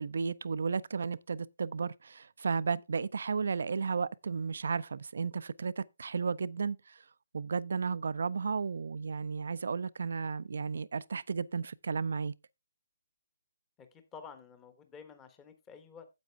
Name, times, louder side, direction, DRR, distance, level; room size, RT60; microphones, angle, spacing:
voice 1, 0.0-7.0 7.3-12.3, right 5 dB, 60° right, 0.5 m, -33 dB
voice 2, 13.8-16.1, left 6 dB, 15° left, 1.2 m, -51 dB
9.5 x 8.0 x 3.4 m
figure-of-eight pair, 140°, 0 cm